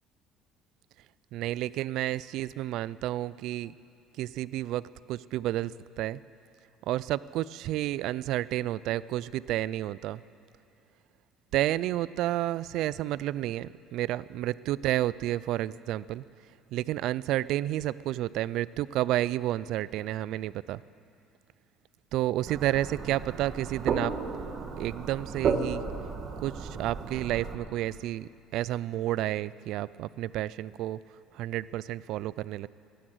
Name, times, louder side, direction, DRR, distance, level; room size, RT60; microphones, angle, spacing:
voice 1, 1.3-3.7 4.2-4.8 5.1-5.7 6.0-6.2 6.9-10.2 11.5-16.2 16.7-20.8 22.1-24.1 24.8-25.8 26.4-31.0 31.3-32.7, right 14 dB, 70° right, 19 dB, 0.3 m, -30 dB
sound 1, 22.5-27.5, right 5 dB, 45° right, 1.7 m, -33 dB
15.5 x 11.5 x 7.9 m, 2.6 s
cardioid pair, 115°, 0 cm